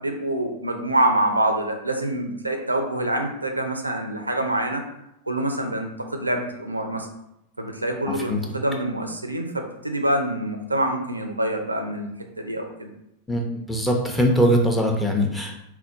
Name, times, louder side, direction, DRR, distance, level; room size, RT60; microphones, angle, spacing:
voice 1, 0.0-4.8 5.2-7.1 7.6-12.1 12.4-12.9, right 1 dB, 85° right, 4 dB, 0.5 m, -26 dB
voice 2, 13.3-15.6, equal, 5° left, 1 dB, 0.7 m, -21 dB
4.2 x 2.2 x 4.0 m, 0.81 s
figure-of-eight pair, 90°, 0 cm